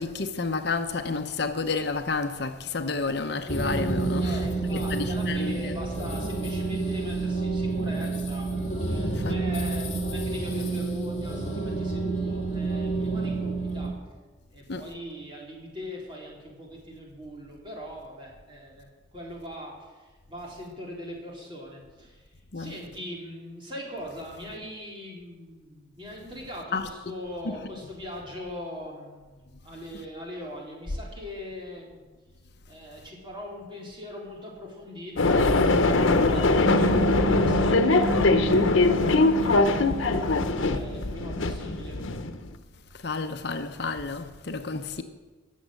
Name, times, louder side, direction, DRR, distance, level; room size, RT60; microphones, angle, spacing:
voice 1, 0.0-4.4 4.7-5.8 9.0-9.3 14.7-14.8 22.5-22.7 26.7-26.9 43.0-45.0, left 4 dB, 55° left, 0.8 m, -30 dB
sound 1, 3.5-13.9, right 3 dB, 35° left, 2.7 m, -29 dB
voice 2, 4.1-8.5 8.9-13.9 14.5-22.3 22.6-32.0 32.7-40.4 40.7-42.0, left 1 dB, 25° right, 3.7 m, -41 dB
sound 2, 35.2-42.5, left 2 dB, 90° left, 0.9 m, -22 dB
sound 3, 36.7-41.3, right 3 dB, 60° right, 0.4 m, -32 dB
19.0 x 7.3 x 7.7 m
head